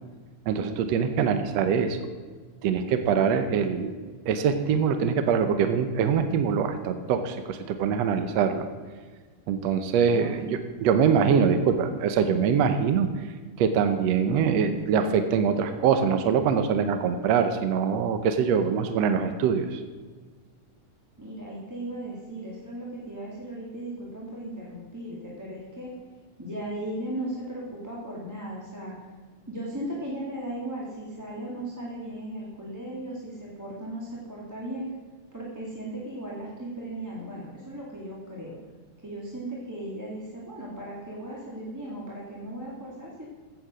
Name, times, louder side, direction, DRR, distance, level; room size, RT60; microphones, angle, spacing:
voice 1, 0.5-2.0 2.6-3.9 4.3-8.7 9.5-13.1 13.6-19.8, right 7 dB, 70° right, 8 dB, 1.9 m, -23 dB
voice 2, 10.0-10.5 21.2-25.9 26.4-29.1 29.5-34.9 35.3-38.6 39.0-43.3, right 1 dB, 5° right, -5 dB, 2.0 m, -37 dB
16.0 x 7.8 x 6.2 m, 1.5 s
omnidirectional pair, 3.4 m